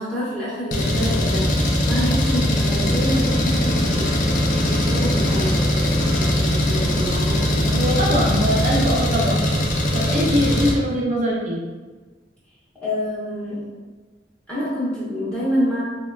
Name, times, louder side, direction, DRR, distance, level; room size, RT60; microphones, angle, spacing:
voice 1, 0.0-1.5 1.8-4.1 4.6-7.8 12.8-13.6 14.5-15.8, equal, 5° left, -10 dB, 0.7 m, -27 dB
Engine, 0.7-10.7, left 1 dB, 45° left, 0.4 m, -20 dB
voice 2, 7.6-9.5 9.9-11.6, equal, 45° right, -6 dB, 0.5 m, -22 dB
3.4 x 2.2 x 2.2 m, 1.3 s
head